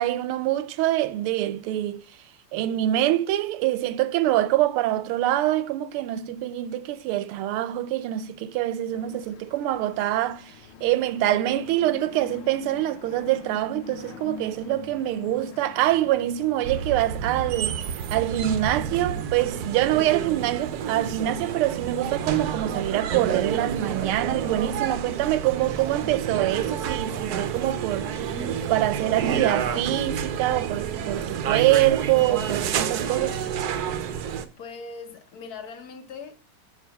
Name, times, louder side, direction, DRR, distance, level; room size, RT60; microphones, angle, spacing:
voice 1, 0.0-2.0 2.5-10.6 10.8-28.4 28.7-33.4, right 14 dB, 90° right, 1.5 m, -25 dB
sound 1, 8.9-17.0, left 9 dB, 85° left, 1.6 m, -44 dB
sound 2, 16.6-34.5, right 8 dB, 70° right, 0.9 m, -29 dB
voice 2, 34.6-36.4, left 4 dB, 55° left, 1.2 m, -40 dB
7.3 x 5.6 x 5.6 m
omnidirectional pair, 2.3 m